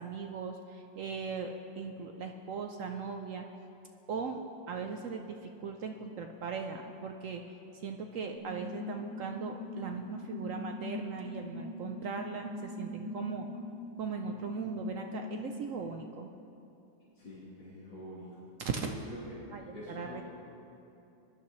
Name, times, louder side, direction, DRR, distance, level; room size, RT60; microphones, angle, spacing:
voice 1, 0.0-3.4 4.1-7.4 7.8-13.5 14.0-16.3 18.6-18.9 19.5-20.2, right 5 dB, 75° right, 4 dB, 0.7 m, -39 dB
sound 1, 8.4-15.7, left 2 dB, 40° left, 1.4 m, -42 dB
voice 2, 17.2-18.3 18.7-19.0 19.3-19.4 19.7-20.2, left 1 dB, 80° left, -11 dB, 4.0 m, -45 dB
20.5 x 11.5 x 3.1 m, 2.8 s
omnidirectional pair, 2.0 m